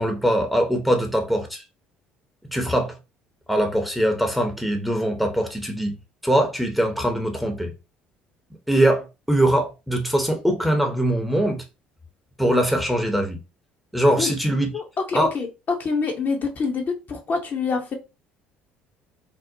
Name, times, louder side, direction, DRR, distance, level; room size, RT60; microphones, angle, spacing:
voice 1, 0.0-1.6 2.5-3.0 3.5-5.9 6.2-7.7 8.7-11.6 12.4-13.4 13.9-14.7 15.1-15.3, right 1 dB, ahead, 0.7 m, -22 dB
voice 2, 14.7-17.9, left 4 dB, 40° left, 0.6 m, -26 dB
2.7 x 2.0 x 2.6 m
figure-of-eight pair, 55°, 5 cm